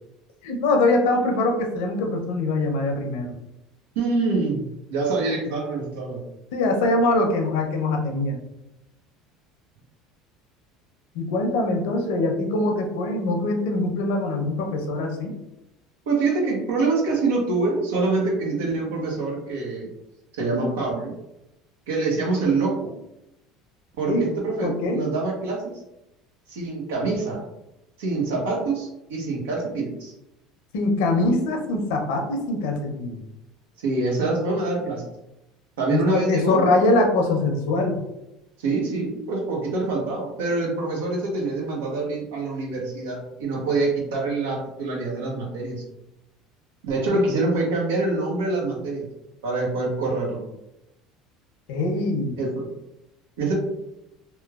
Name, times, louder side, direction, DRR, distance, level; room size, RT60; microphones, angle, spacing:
voice 1, 0.4-3.3 6.5-8.4 11.1-15.3 24.1-24.2 24.6-25.0 30.7-33.2 35.9-38.0 47.1-47.2 51.7-52.4, left 2 dB, 80° left, 3 dB, 0.6 m, -23 dB
voice 2, 3.9-6.2 16.1-19.9 20.4-21.1 21.9-22.7 24.0-25.7 26.5-27.4 28.0-30.1 33.8-35.0 35.8-36.6 38.6-45.8 46.8-49.0 49.4-50.4 52.4-52.7 53.4-53.5, right 3 dB, 85° right, -1 dB, 0.8 m, -25 dB
3.0 x 2.1 x 2.3 m, 0.89 s
supercardioid pair, 100°, 0 cm